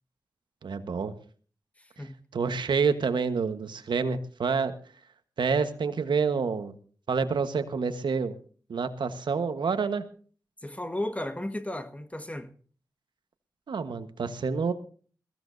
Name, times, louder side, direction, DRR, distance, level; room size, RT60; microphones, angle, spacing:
voice 1, 0.6-1.1 2.3-4.7 5.4-6.7 7.1-8.3 8.7-10.0 13.7-14.7, right 5 dB, 85° right, 1.3 m, -28 dB
voice 2, 1.8-2.2 10.6-12.5, left 1 dB, 20° left, 1.6 m, -34 dB
22.0 x 15.5 x 2.7 m
cardioid pair, 50°, 8 cm